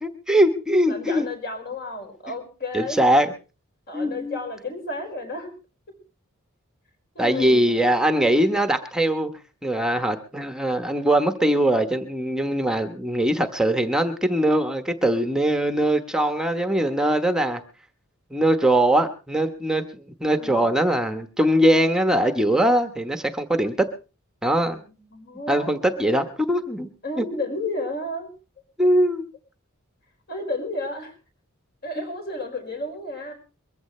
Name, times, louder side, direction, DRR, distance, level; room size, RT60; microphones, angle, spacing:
voice 1, 0.0-1.3 2.7-3.3 3.9-4.4 7.2-9.3 9.6-17.6 18.3-23.9 24.4-24.8 25.5-26.9 27.2-27.3 28.8-29.3 32.0-32.1, right 1 dB, 5° right, 8 dB, 1.0 m, -21 dB
voice 2, 0.9-3.0 3.9-5.5 7.1-7.8 20.3-20.7 24.6-26.2 27.0-28.3 30.3-31.1 31.8-33.3, left 2 dB, 50° left, 4 dB, 5.0 m, -32 dB
22.5 x 15.0 x 3.2 m, 0.33 s
head